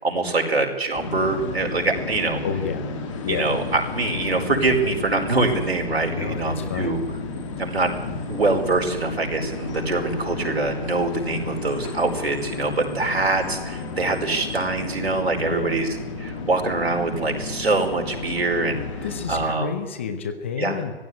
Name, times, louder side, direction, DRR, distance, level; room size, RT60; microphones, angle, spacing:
voice 1, 0.0-2.4 3.3-7.0 7.6-7.9 8.3-15.9 16.2-18.9 19.3-19.7 20.6-20.8, right 3 dB, 85° right, 2 dB, 4.9 m, -24 dB
sound 1, 0.9-19.5, left 4 dB, 30° left, 2.9 m, -33 dB
voice 2, 2.4-2.9 3.2-3.5 6.0-7.0 15.4-15.8 19.0-20.9, left 6 dB, 15° left, 9 dB, 0.6 m, -30 dB
18.5 x 15.5 x 9.5 m, 1.2 s
hypercardioid pair, 155°, 30 cm